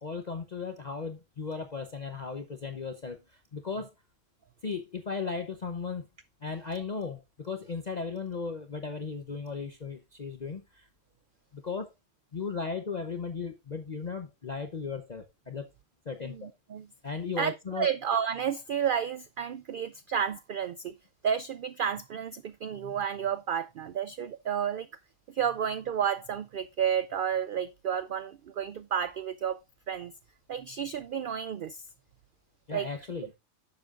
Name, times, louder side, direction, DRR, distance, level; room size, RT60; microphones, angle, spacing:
voice 1, 0.0-3.9 4.6-6.1 6.4-10.9 11.5-11.9 12.3-15.7 16.1-16.5 17.0-17.9 32.7-33.3, left 5 dB, 35° left, 0.9 m, -36 dB
voice 2, 16.2-16.9 17.4-20.9 21.2-24.9 25.3-29.6 29.9-30.1 30.5-31.8 32.7-32.9, right 8 dB, 65° right, 0.5 m, -31 dB
10.5 x 7.5 x 2.4 m
omnidirectional pair, 1.4 m